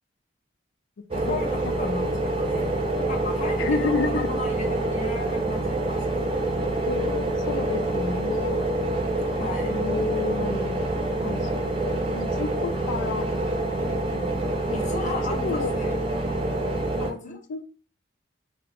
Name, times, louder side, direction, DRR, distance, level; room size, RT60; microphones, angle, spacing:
voice 1, 1.1-6.3 9.3-9.8 14.7-16.6 17.1-17.4, left 3 dB, 40° left, 2 dB, 0.7 m, -36 dB
sound 1, 1.1-17.1, right 2 dB, 30° right, 0.5 m, -26 dB
voice 2, 3.6-4.3 6.8-8.6 9.6-10.8 11.2-13.3 13.7-14.3 14.7-14.8 15.3-15.7 17.0-17.6, left 4 dB, 80° left, 8 dB, 0.4 m, -31 dB
2.6 x 2.0 x 4.0 m, 0.40 s
head